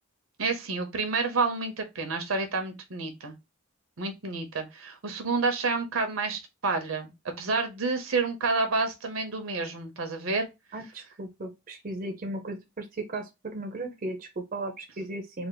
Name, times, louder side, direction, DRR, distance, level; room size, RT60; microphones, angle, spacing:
voice 1, 0.4-3.3 4.0-7.1 7.4-10.5, right 3 dB, 75° right, 0.8 m, -29 dB
voice 2, 10.7-15.5, right 2 dB, 45° right, 0.6 m, -36 dB
3.4 x 2.0 x 3.9 m
head